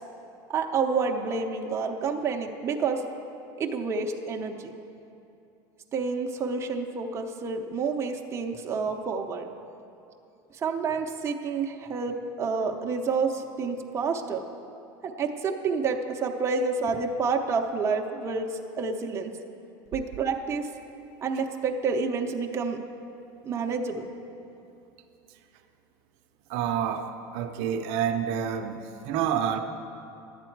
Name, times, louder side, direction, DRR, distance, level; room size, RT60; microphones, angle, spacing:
voice 1, 0.5-3.0 3.6-4.7 5.9-9.5 10.6-14.4 15.0-19.3 19.9-20.7 21.2-22.8 23.4-24.1, right 4 dB, 25° right, 3 dB, 0.6 m, -29 dB
voice 2, 26.5-29.6, right 8 dB, 65° right, 5 dB, 0.6 m, -28 dB
11.0 x 8.1 x 4.6 m, 2.8 s
supercardioid pair, 140°, 11 cm